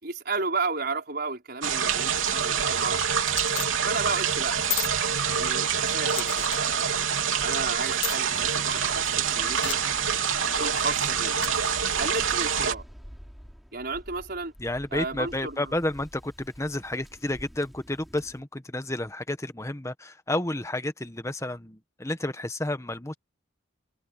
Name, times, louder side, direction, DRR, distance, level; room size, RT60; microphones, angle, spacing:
voice 1, 0.0-3.0 3.8-4.6 5.3-6.9 7.4-9.8 10.6-11.4 12.0-12.8 13.7-14.5 14.9-15.7, right 3 dB, 50° right, 5.2 m, -33 dB
sound 1, 1.6-12.7, right 7 dB, 80° right, 3.5 m, -26 dB
sound 2, 3.3-3.7 4.6-4.9 6.1-6.6 7.9-8.2 9.6-9.8 11.4-11.8, left 13 dB, 65° left, 2.2 m, -33 dB
Waves surf, 8.2-18.4, equal, ahead, 7.0 m, -47 dB
voice 2, 14.6-23.1, left 1 dB, 15° left, 1.2 m, -31 dB
head